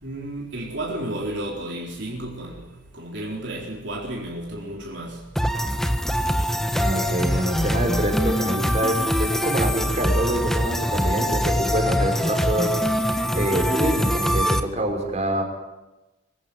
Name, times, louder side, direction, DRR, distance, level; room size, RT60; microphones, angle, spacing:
voice 1, 0.0-2.6 2.9-5.2, right 1 dB, 60° right, 4.2 m, -32 dB
sound 1, 5.4-14.6, equal, ahead, 1.4 m, -23 dB
voice 2, 6.7-15.4, right 1 dB, 35° right, 5.4 m, -26 dB
24.5 x 16.0 x 9.5 m
head